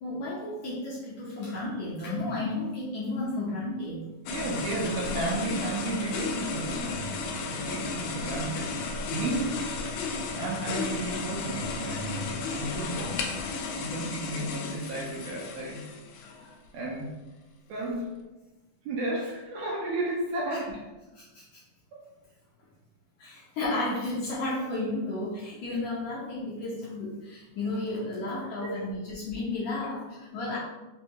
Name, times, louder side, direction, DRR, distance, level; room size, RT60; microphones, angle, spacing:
voice 1, 0.0-4.0 20.5-20.6 21.1-21.4 23.2-30.6, left 2 dB, 70° left, -8 dB, 1.7 m, -33 dB
sound 1, 4.3-16.6, left 4 dB, 90° left, 1.7 m, -34 dB
voice 2, 4.3-8.8 9.1-9.7 10.4-13.3 13.8-15.9 16.7-17.2 17.7-18.2 18.9-20.9 21.9-22.0 28.6-28.9 29.8-29.9, right 2 dB, 80° right, -2 dB, 1.9 m, -33 dB
5.3 x 2.2 x 2.8 m, 1.1 s
omnidirectional pair, 4.0 m